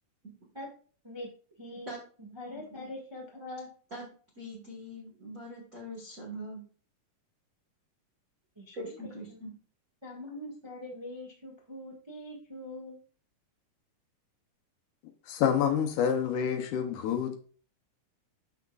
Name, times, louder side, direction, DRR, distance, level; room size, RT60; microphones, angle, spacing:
voice 1, 1.6-3.7 8.5-8.9 9.3-9.4 10.0-13.0, left 1 dB, 20° right, 0.6 m, -43 dB
voice 2, 2.4-2.9 3.9-4.1 4.4-6.6 8.7-9.5, equal, 40° right, 1.2 m, -42 dB
voice 3, 15.3-17.4, left 8 dB, 75° left, 2.1 m, -27 dB
12.0 x 4.9 x 2.4 m
omnidirectional pair, 3.8 m